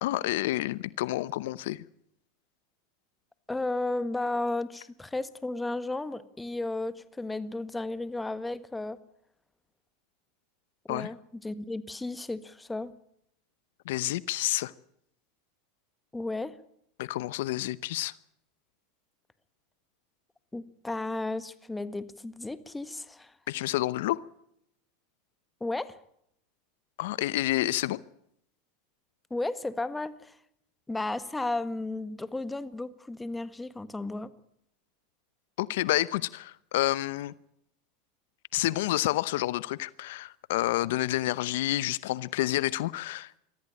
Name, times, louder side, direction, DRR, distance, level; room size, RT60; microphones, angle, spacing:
voice 1, 0.0-1.8 10.9-11.1 13.9-14.7 17.0-18.1 23.5-24.2 27.0-28.0 35.6-37.3 38.5-43.4, left 16 dB, 75° left, 0.7 m, -29 dB
voice 2, 3.5-9.0 10.9-12.9 16.1-16.6 20.5-23.3 25.6-26.0 29.3-30.4 30.9-34.3, left 2 dB, 10° left, 1.5 m, -34 dB
23.0 x 14.5 x 8.7 m
hypercardioid pair, 110°, 0 cm